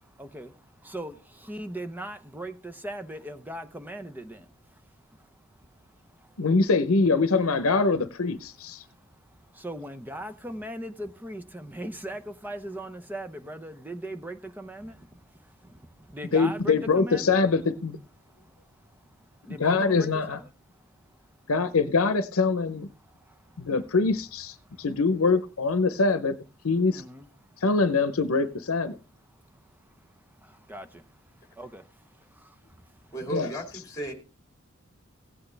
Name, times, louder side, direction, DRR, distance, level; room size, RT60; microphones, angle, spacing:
voice 1, 0.0-6.5 8.8-17.4 18.2-21.3 23.0-23.7 24.6-24.9 26.9-27.6 29.3-33.2, right 1 dB, 10° right, 0.8 m, -41 dB
voice 2, 6.4-8.8 16.3-18.0 19.6-20.4 21.5-22.9 23.6-26.4 26.6-27.0 27.6-29.0 33.3-33.5, left 4 dB, 85° left, 0.8 m, -24 dB
voice 3, 33.1-34.1, right 2 dB, 15° left, 2.4 m, -34 dB
16.5 x 8.5 x 3.3 m
head